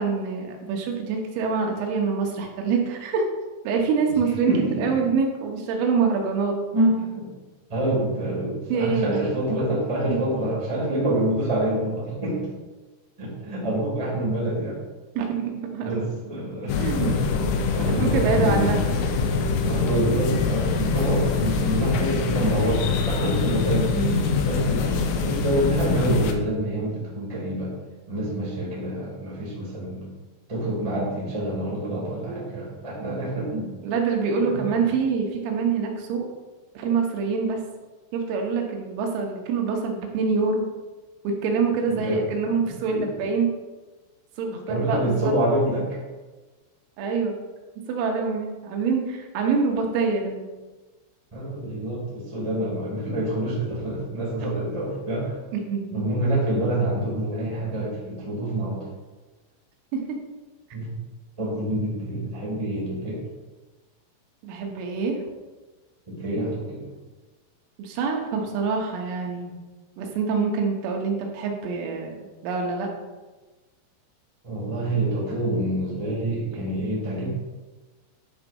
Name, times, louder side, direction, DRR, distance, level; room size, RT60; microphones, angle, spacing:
voice 1, 0.0-3.3 3.7-6.6 8.7-9.2 15.2-16.1 16.8-17.1 17.9-18.8 23.9-24.2 32.3-32.7 33.8-36.3 36.8-37.6 38.1-40.7 41.3-43.5 44.4-45.3 47.0-47.3 47.9-50.5 55.5-56.1 59.9-60.2 64.4-65.2 67.8-69.6 70.0-72.9, right 5 dB, 80° right, 1 dB, 3.7 m, -25 dB
voice 2, 4.4-5.0 6.7-7.3 7.7-12.5 13.2-14.8 15.8-17.2 17.7-18.7 19.6-23.9 24.4-27.7 28.1-30.1 30.5-33.7 34.4-34.7 41.9-42.2 42.6-43.1 44.5-46.0 51.3-55.4 55.9-58.8 60.7-60.9 61.4-63.2 66.1-66.9 74.4-77.3, right 1 dB, 20° right, -5 dB, 0.8 m, -27 dB
sound 1, 16.7-26.3, left 5 dB, 85° left, 2.5 m, -24 dB
10.5 x 4.0 x 5.3 m, 1.2 s
omnidirectional pair, 5.9 m